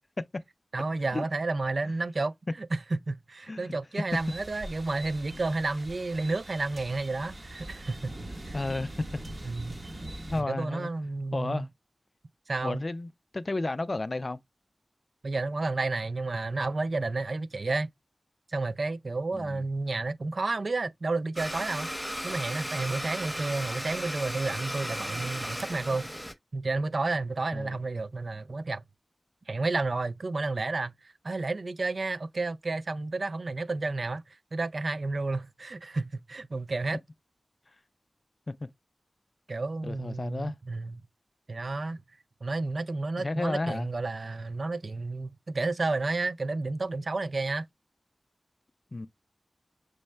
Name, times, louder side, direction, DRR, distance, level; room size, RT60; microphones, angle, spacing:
voice 1, 0.7-2.3 2.6-8.1 8.5-8.6 9.4-9.7 10.3-11.7 12.5-12.8 15.2-17.9 18.5-21.9 22.2-26.1 26.5-28.8 29.5-37.0 39.5-41.0 41.5-42.0 42.4-47.6, right 3 dB, 70° right, 0.4 m, -31 dB
voice 2, 3.5-3.8 5.3-5.4 8.5-9.2 10.3-10.9 11.3-11.7 12.6-14.4 19.3-19.6 27.5-27.8 38.5-38.7 39.8-40.5 43.2-43.9 48.9-49.1, left 2 dB, 50° left, 0.3 m, -32 dB
sound 1, 4.1-10.4, right 1 dB, 50° right, 1.1 m, -42 dB
Domestic sounds home sounds, 21.4-26.3, equal, 5° right, 0.6 m, -35 dB
6.1 x 2.1 x 3.2 m
cardioid pair, 40°, 0 cm